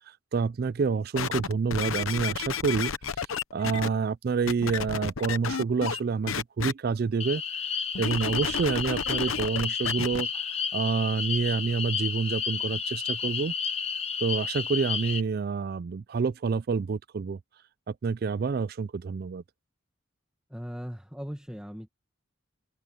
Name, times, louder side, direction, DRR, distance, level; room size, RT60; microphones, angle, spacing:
voice 1, 0.1-2.9 3.5-13.5 14.2-17.4 17.9-19.4, right 5 dB, 45° right, 0.3 m, -28 dB
sound 1, 1.2-3.9 4.5-6.0 6.3-6.7 7.9-10.2 10.9-11.0, left 6 dB, 80° left, 0.8 m, -31 dB
sound 2, 7.2-15.2, left 6 dB, 30° left, 1.2 m, -31 dB
voice 2, 20.5-21.9, equal, 5° right, 1.7 m, -38 dB
open air
head